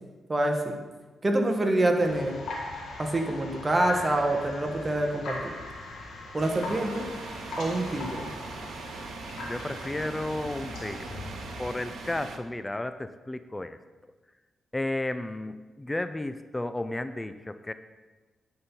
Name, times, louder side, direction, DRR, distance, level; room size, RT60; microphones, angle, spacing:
voice 1, 0.3-0.8 1.2-2.4 3.0-5.5 6.3-7.1 7.6-8.3, right 1 dB, 30° right, 3 dB, 1.4 m, -26 dB
sound 1, 2.0-11.7, left 2 dB, 85° left, 1.8 m, -40 dB
sound 2, 6.4-12.4, right 4 dB, 75° right, 0.8 m, -41 dB
voice 2, 9.4-11.3 11.6-13.8 14.7-17.7, left 1 dB, 20° left, 11 dB, 0.4 m, -33 dB
9.9 x 4.5 x 5.4 m, 1.3 s
cardioid pair, 70°, 0 cm